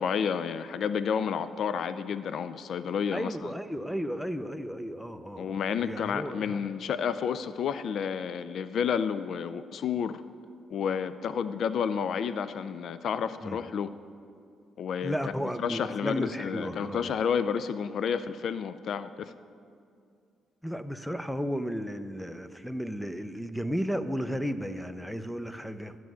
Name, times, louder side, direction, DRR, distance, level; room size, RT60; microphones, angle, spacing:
voice 1, 0.0-3.5 5.4-10.2 10.7-13.9 14.8-15.3 15.6-19.3, left 7 dB, 65° left, 13 dB, 0.4 m, -30 dB
voice 2, 3.1-6.7 13.4-13.6 15.0-17.2 20.6-26.0, equal, ahead, 11 dB, 0.6 m, -34 dB
12.0 x 6.2 x 9.2 m, 2.4 s
cardioid pair, 90°, 0 cm